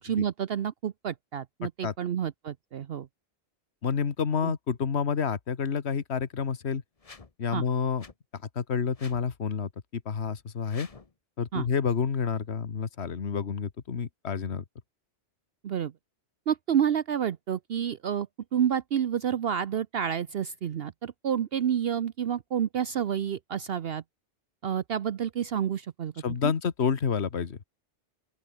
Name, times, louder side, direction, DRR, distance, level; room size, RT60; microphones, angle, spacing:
voice 1, 0.0-3.1 4.4-4.5 7.5-7.6 11.5-11.7 15.6-15.9 16.5-24.0 24.6-26.1 26.4-26.5, right 9 dB, 60° right, 0.9 m, -29 dB
voice 2, 3.8-6.8 7.4-8.0 8.3-10.9 11.4-14.6 26.2-27.6, left 6 dB, 65° left, 1.6 m, -29 dB
sound 1, 7.0-7.3 8.0-8.1 8.9-9.2 10.6-11.1, left 4 dB, 30° left, 1.2 m, -49 dB
open air
omnidirectional pair, 1.2 m